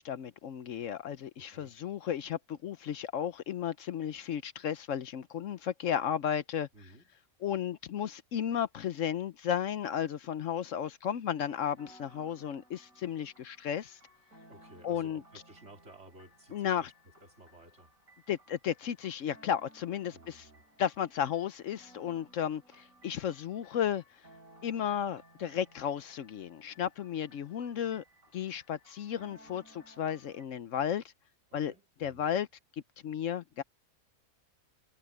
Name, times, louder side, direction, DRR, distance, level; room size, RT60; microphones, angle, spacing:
voice 1, 0.0-6.7 7.4-14.0 14.8-15.2 16.5-16.9 18.3-20.4 20.8-24.0 24.6-28.0 28.3-31.0 31.5-31.7 32.0-32.5 33.0-33.6, left 9 dB, 70° left, 1.0 m, -34 dB
voice 2, 1.4-1.8 6.7-7.1 14.5-16.9 17.2-17.9 20.1-20.7 31.5-32.3, right 1 dB, 55° right, 4.2 m, -55 dB
sound 1, 11.3-30.5, equal, 75° right, 4.9 m, -60 dB
omnidirectional pair, 1.4 m